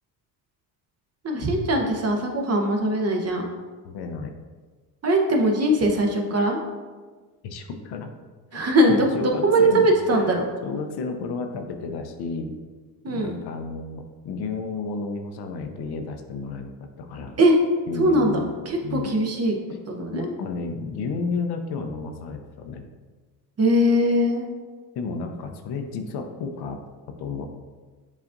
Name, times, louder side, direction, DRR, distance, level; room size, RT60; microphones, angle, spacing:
voice 1, 1.2-3.5 5.0-6.6 8.5-10.4 13.0-13.3 17.4-17.6 18.0-19.6 19.9-20.2 23.6-24.5, right 1 dB, 35° right, 2 dB, 0.8 m, -21 dB
voice 2, 3.8-4.3 7.4-8.1 8.5-8.6 8.8-10.3 10.6-12.6 13.1-17.4 17.9-18.5 18.8-19.1 20.1-22.9 25.0-26.8 27.2-27.5, left 4 dB, 60° left, 5 dB, 0.6 m, -32 dB
7.2 x 2.4 x 2.5 m, 1.4 s
supercardioid pair, 75°, 45 cm